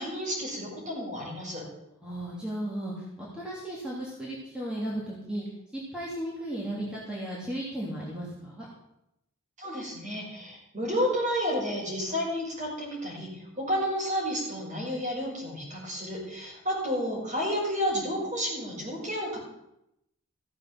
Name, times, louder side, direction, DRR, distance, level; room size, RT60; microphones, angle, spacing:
voice 1, 0.0-1.6 9.6-19.4, equal, 35° right, -3 dB, 5.6 m, -31 dB
voice 2, 2.0-5.4 5.7-8.7, right 1 dB, 5° right, -6 dB, 2.7 m, -35 dB
15.0 x 7.4 x 7.6 m, 0.84 s
head